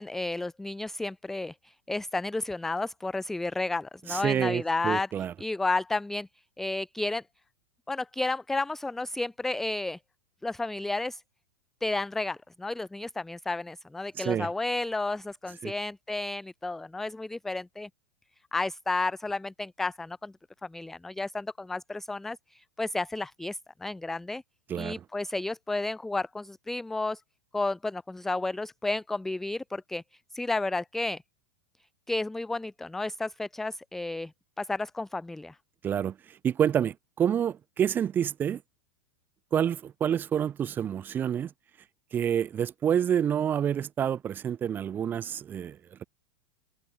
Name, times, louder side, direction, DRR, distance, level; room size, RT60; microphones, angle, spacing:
voice 1, 0.0-5.1 5.4-6.3 6.6-7.2 7.9-10.0 10.4-11.2 11.8-17.9 18.5-20.3 20.6-24.4 24.7-27.2 27.5-30.0 30.3-31.2 32.1-34.3 34.6-35.6, left 2 dB, 5° left, 0.4 m, -32 dB
voice 2, 4.1-5.3 14.1-14.5 15.6-15.7 24.7-25.0 35.8-38.6 39.5-41.5 42.1-46.0, right 9 dB, 15° right, 1.3 m, -28 dB
supercardioid pair, 170°, 12 cm